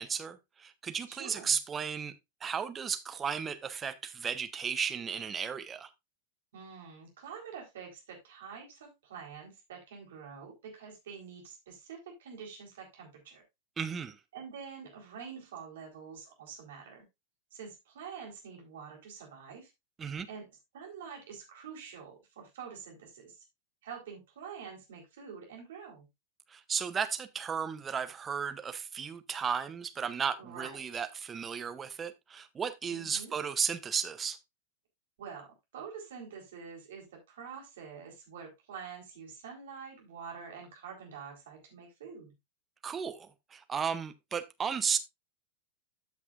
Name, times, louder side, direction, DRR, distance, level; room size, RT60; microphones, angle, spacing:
voice 1, 0.0-2.1 2.4-5.9 13.8-14.2 20.0-20.3 26.5-34.4 42.8-45.0, right 7 dB, 20° right, 0.9 m, -34 dB
voice 2, 1.1-1.6 6.5-13.4 14.3-17.0 17.5-19.7 20.3-20.4 20.7-23.4 23.8-26.1 30.4-30.8 32.9-33.3 35.2-35.5 35.7-42.3, right 6 dB, 60° right, 4.0 m, -46 dB
13.5 x 6.0 x 2.5 m
figure-of-eight pair, 90°, 0 cm